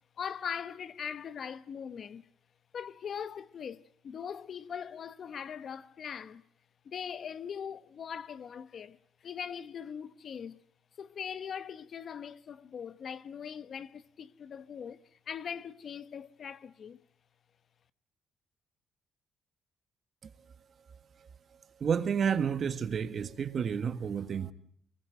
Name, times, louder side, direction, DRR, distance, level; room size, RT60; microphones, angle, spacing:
voice 1, 0.2-2.3 2.7-6.4 6.8-10.6 11.0-17.0, left 7 dB, 55° left, 1.0 m, -41 dB
voice 2, 21.8-24.5, right 7 dB, 50° right, 1.6 m, -30 dB
24.0 x 20.5 x 9.0 m
cardioid pair, 90°, 0 cm